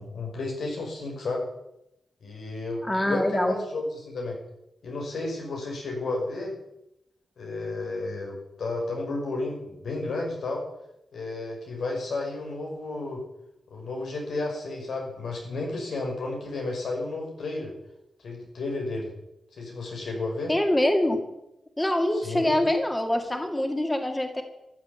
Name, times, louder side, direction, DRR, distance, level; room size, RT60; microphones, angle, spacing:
voice 1, 0.0-1.4 2.2-4.4 4.8-6.5 7.4-10.6 11.1-13.2 13.7-17.8 18.2-19.1 19.5-20.5 22.1-22.6, left 2 dB, 85° left, 0 dB, 6.1 m, -32 dB
voice 2, 2.8-3.5 20.5-21.2 21.8-24.4, left 1 dB, 10° left, 4 dB, 2.1 m, -24 dB
15.0 x 11.0 x 8.8 m, 0.88 s
wide cardioid pair, 140°, 0 cm